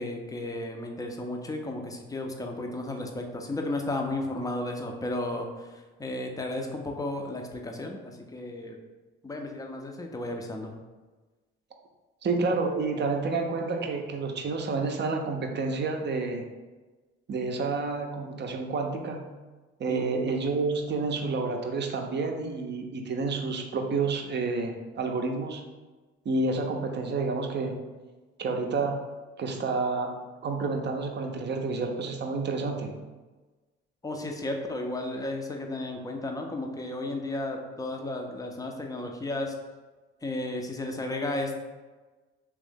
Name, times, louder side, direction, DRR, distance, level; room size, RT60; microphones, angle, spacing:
voice 1, 0.0-8.8 9.2-10.7 19.9-20.1 34.0-39.5 40.2-41.6, left 2 dB, 10° left, 3 dB, 0.6 m, -33 dB
voice 2, 12.2-16.4 17.3-19.3 19.8-25.6 26.2-27.7 28.4-29.0 29.4-32.9, right 3 dB, 35° right, 3 dB, 0.6 m, -29 dB
3.3 x 3.1 x 3.5 m, 1.3 s
figure-of-eight pair, 50°, 32 cm